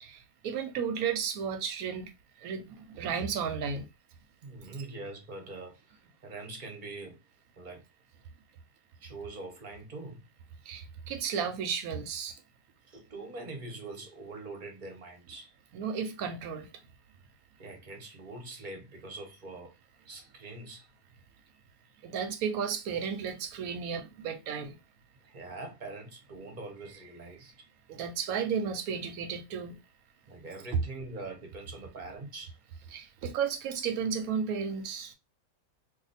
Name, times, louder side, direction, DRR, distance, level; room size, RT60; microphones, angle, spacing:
voice 1, 0.0-2.1 2.4-3.9 10.7-12.3 15.7-16.7 22.0-24.8 27.9-29.8 30.7-30.8 32.9-35.1, right 6 dB, 85° right, 1.1 m, -33 dB
voice 2, 4.4-7.2 7.6-7.8 9.0-10.3 12.9-15.5 17.6-19.7 20.1-20.9 25.2-27.7 30.3-32.6, right 2 dB, 40° right, 0.9 m, -43 dB
2.7 x 2.3 x 4.0 m
omnidirectional pair, 1.5 m